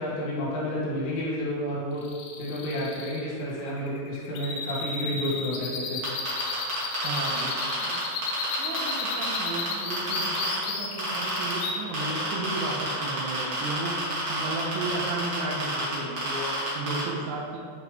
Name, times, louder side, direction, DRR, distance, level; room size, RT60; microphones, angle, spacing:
voice 1, 0.0-2.0 2.4-6.0, equal, 70° left, -7 dB, 4.0 m, -30 dB
sound 1, 2.0-11.7, left 5 dB, 90° left, 3.5 m, -33 dB
sound 2, 6.0-10.6 11.0-11.6 11.9-17.0, right 2 dB, 65° right, 1.2 m, -30 dB
voice 2, 7.0-8.0 8.6-17.6, right 2 dB, 80° right, -3 dB, 2.8 m, -34 dB
10.5 x 5.3 x 3.1 m, 2.1 s
omnidirectional pair, 5.9 m